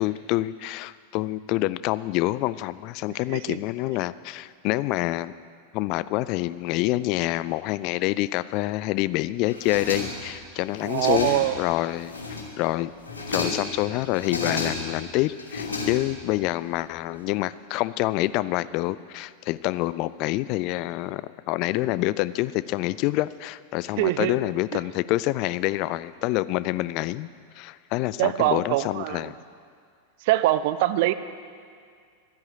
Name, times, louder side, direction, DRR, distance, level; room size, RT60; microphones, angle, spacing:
voice 1, 0.0-5.3 5.7-12.1 12.6-12.9 13.3-27.3 27.6-29.4, left 17 dB, 40° left, 17 dB, 0.4 m, -27 dB
sound 1, 9.5-10.4 10.7-11.6 12.0-12.6 13.0-13.7 14.1-15.0 15.4-16.4, left 3 dB, 75° left, 2.8 m, -32 dB
voice 2, 10.8-11.6 24.0-24.3 24.7-24.8 28.2-29.3 30.2-31.1, right 15 dB, 50° right, 13 dB, 0.6 m, -23 dB
13.0 x 10.5 x 8.7 m, 2.2 s
figure-of-eight pair, 90°, 0 cm